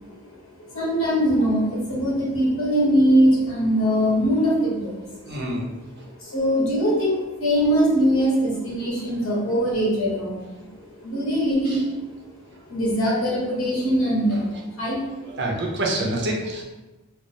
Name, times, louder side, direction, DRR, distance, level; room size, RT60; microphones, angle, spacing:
voice 1, 0.6-5.4 6.2-10.7 11.0-12.1 12.6-15.4, equal, 60° left, -5 dB, 1.4 m, -22 dB
voice 2, 5.2-5.6 6.0-6.1 11.7-11.8 14.3-14.4 15.3-16.6, right 1 dB, 50° right, -1 dB, 0.7 m, -27 dB
3.2 x 2.1 x 4.2 m, 1.1 s
head